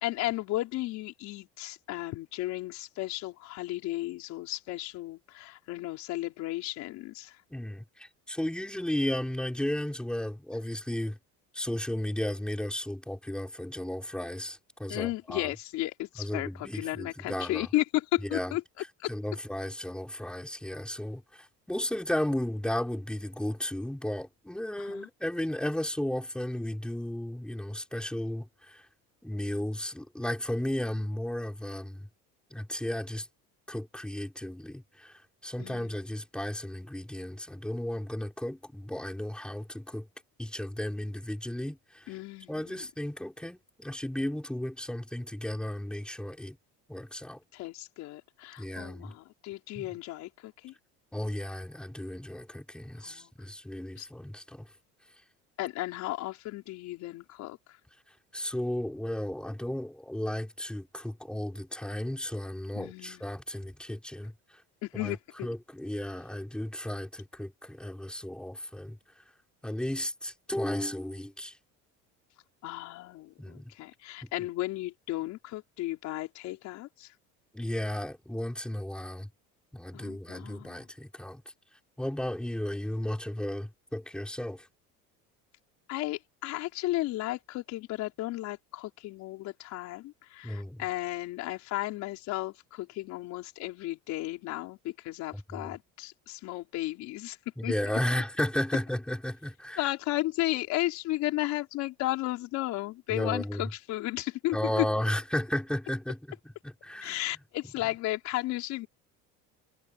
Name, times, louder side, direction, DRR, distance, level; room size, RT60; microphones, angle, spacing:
voice 1, 0.0-7.3 14.9-18.6 24.8-25.1 35.6-36.0 42.1-42.9 47.5-50.7 53.0-53.3 54.0-54.1 55.6-57.6 62.7-63.2 64.8-65.5 72.6-77.1 79.9-80.8 85.9-97.4 97.6-97.7 99.8-104.9 107.0-108.9, left 17 dB, 60° left, 4.9 m, -34 dB
voice 2, 7.5-11.2 11.5-15.5 16.2-17.7 18.2-18.6 19.1-21.2 21.7-28.8 29.2-32.1 32.5-33.3 33.7-35.1 35.4-40.1 40.4-42.0 42.5-46.6 46.9-47.4 48.6-49.1 49.7-49.8 51.1-54.7 58.3-64.3 64.9-65.2 65.4-69.0 69.6-71.6 73.4-73.7 74.4-74.5 77.5-79.3 79.7-81.4 82.0-84.7 90.4-90.8 95.3-95.7 97.6-99.9 103.1-103.7 104.5-107.2, left 1 dB, 5° left, 6.2 m, -34 dB
cardioid pair, 140°, 31 cm